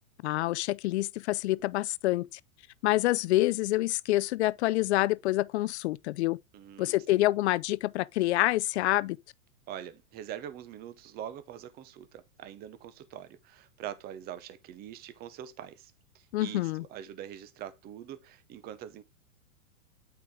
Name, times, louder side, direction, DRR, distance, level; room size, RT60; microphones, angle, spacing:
voice 1, 0.2-2.4 2.8-6.4 6.8-9.2 16.3-16.8, left 17 dB, 50° left, 0.4 m, -27 dB
voice 2, 6.5-6.9 9.7-19.0, right 10 dB, 20° right, 0.7 m, -43 dB
8.3 x 4.7 x 3.6 m
hypercardioid pair, 130°, 44 cm